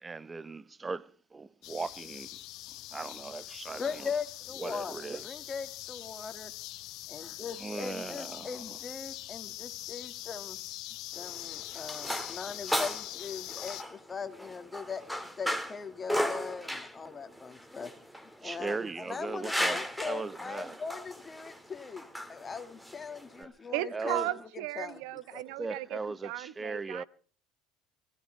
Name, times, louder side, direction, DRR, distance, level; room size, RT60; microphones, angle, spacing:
voice 1, 0.0-2.3 2.9-4.1 4.6-5.5 7.6-8.6 18.4-20.8 23.4-23.5 23.9-24.3 25.6-27.0, right 3 dB, 20° right, 1.0 m, -38 dB
sound 1, 1.6-13.8, left 16 dB, 65° left, 1.3 m, -43 dB
voice 2, 3.8-6.5 7.1-10.6 11.2-15.0 15.4-17.9 18.4-25.0 25.3-25.4, left 5 dB, 25° left, 2.2 m, -40 dB
sound 2, 11.1-23.4, equal, ahead, 2.2 m, -36 dB
voice 3, 23.7-27.0, right 15 dB, 75° right, 1.1 m, -36 dB
24.5 x 15.5 x 3.4 m
supercardioid pair, 95°, 0 cm